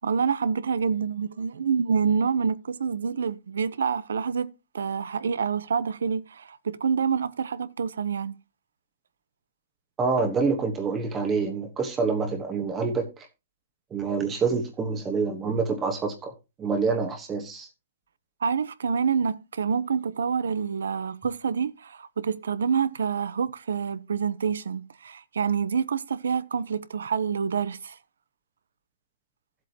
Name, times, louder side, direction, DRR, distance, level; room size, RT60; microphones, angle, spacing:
voice 1, 0.0-4.5 4.7-8.3 18.4-28.0, right 6 dB, 90° right, 0.8 m, -27 dB
voice 2, 10.0-13.1 13.9-16.3 16.6-17.7, right 4 dB, 15° right, 1.2 m, -26 dB
15.0 x 7.8 x 2.9 m
hypercardioid pair, 160°, 0 cm